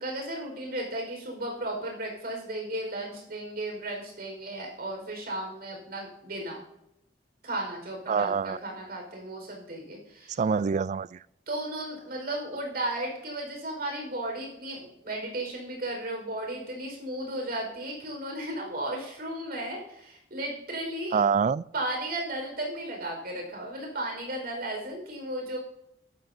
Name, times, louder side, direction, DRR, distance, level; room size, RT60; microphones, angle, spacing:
voice 1, 0.0-6.6 7.4-10.4 11.5-21.2 21.7-25.6, right 1 dB, 60° right, 4.9 m, -35 dB
voice 2, 8.1-8.6 10.3-11.2 21.1-21.6, right 6 dB, 40° right, 0.3 m, -26 dB
13.5 x 13.0 x 2.8 m
head